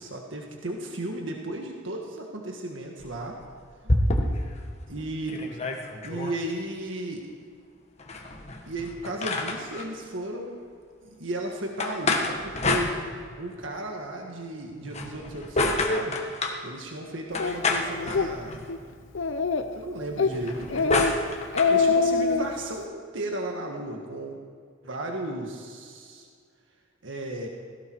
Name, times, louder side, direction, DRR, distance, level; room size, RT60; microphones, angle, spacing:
voice 1, 0.0-3.3 4.9-5.6 6.0-7.3 8.7-10.6 11.0-16.1 16.6-18.6 19.7-24.4 24.8-26.3 27.0-27.5, right 1 dB, 70° right, 1 dB, 1.7 m, -35 dB
sound 1, 3.0-4.6 5.0-5.1 5.3-6.4 8.0-9.9 11.8-13.5 14.8-16.6 17.3-18.8 20.2-21.8, left 2 dB, 35° left, 1.5 m, -28 dB
Speech, 17.4-17.6 18.0-18.3 18.7-18.8 19.2-19.8 20.2-20.4 20.7-21.1 21.4-22.5, left 4 dB, 75° left, 0.8 m, -23 dB
17.0 x 16.5 x 4.7 m, 2.1 s
head